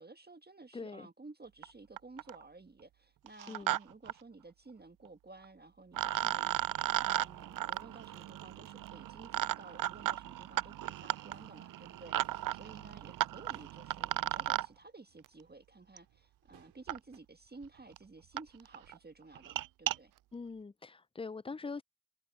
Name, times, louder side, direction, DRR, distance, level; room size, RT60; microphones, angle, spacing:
voice 1, 0.0-20.1, right 3 dB, 20° right, 1.6 m, -54 dB
voice 2, 0.7-1.1 3.5-3.8 20.3-21.8, left 4 dB, 15° left, 0.5 m, -43 dB
sound 1, 1.6-1.7 2.0-2.4 3.3-3.8 4.1-4.2 5.4-5.5 5.9-14.7 16.0-16.1 16.9-17.0 17.6-17.7 18.0-18.1 18.4-18.5 18.7-18.9 19.4-20.0, right 14 dB, 50° right, 0.5 m, -35 dB
sound 2, 11.0-17.2, right 11 dB, 70° right, 5.9 m, -69 dB
hypercardioid pair, 45°, 43 cm